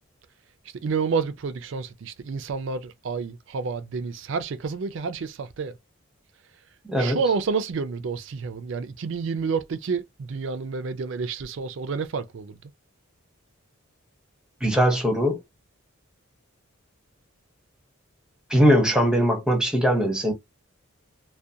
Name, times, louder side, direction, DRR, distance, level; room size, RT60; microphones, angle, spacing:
voice 1, 0.8-5.7 7.0-12.6, right 5 dB, 60° right, 0.4 m, -29 dB
voice 2, 6.9-7.2 14.6-15.4 18.5-20.3, equal, 5° right, 0.6 m, -20 dB
2.4 x 2.2 x 2.6 m
head